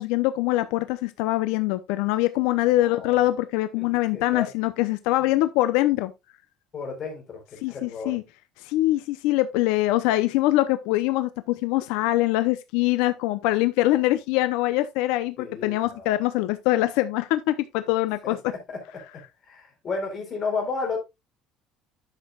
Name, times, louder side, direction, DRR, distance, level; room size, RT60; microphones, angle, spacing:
voice 1, 0.0-6.1 7.6-8.2 8.6-18.5, left 16 dB, 90° left, 0.7 m, -23 dB
voice 2, 2.8-3.2 3.8-3.9 4.1-4.5 6.7-7.4 7.7-8.2 15.4-16.2 18.2-18.8 19.4-21.0, left 4 dB, 30° left, 3.9 m, -32 dB
11.5 x 6.7 x 2.4 m
cardioid pair, 175°, 0 cm